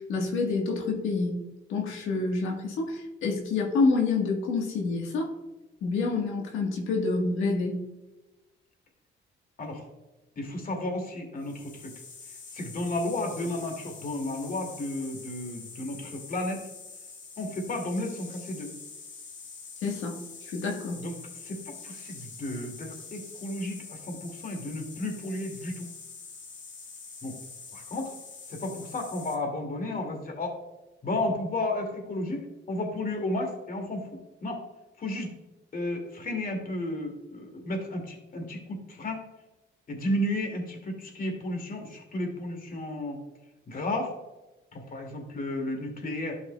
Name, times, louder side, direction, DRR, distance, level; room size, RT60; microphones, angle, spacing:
voice 1, 0.0-1.4 1.7-5.3 5.8-7.8 19.8-21.0, left 3 dB, 85° left, 0 dB, 1.5 m, -28 dB
voice 2, 10.4-11.9 12.5-16.6 17.4-18.7 21.0-21.1 21.4-25.9 27.2-27.4 27.7-28.1 28.5-30.6 31.0-34.1 34.4-34.6 35.0-35.3 35.7-39.2 39.9-43.2 43.7-44.1 44.7-46.4, left 1 dB, 45° left, 3 dB, 2.3 m, -33 dB
sound 1, 11.4-29.3, left 5 dB, 70° left, 2.1 m, -45 dB
12.0 x 5.6 x 2.3 m, 1.0 s
cardioid pair, 90°, 20 cm